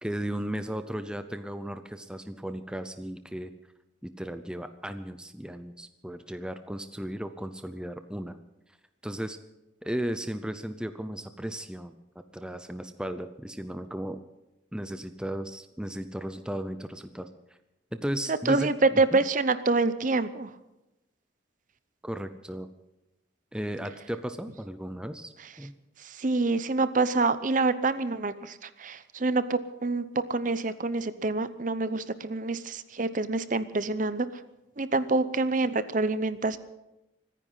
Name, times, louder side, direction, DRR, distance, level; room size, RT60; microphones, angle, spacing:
voice 1, 0.0-3.5 4.0-8.4 9.0-9.4 9.8-11.9 12.3-14.2 14.7-17.3 17.9-19.2 22.0-22.7 23.5-25.7, right 1 dB, 5° right, 9 dB, 0.6 m, -35 dB
voice 2, 18.5-20.5 26.0-30.0 30.3-34.4 34.8-36.6, right 3 dB, 40° right, 13 dB, 0.7 m, -26 dB
24.5 x 10.0 x 5.6 m, 0.94 s
head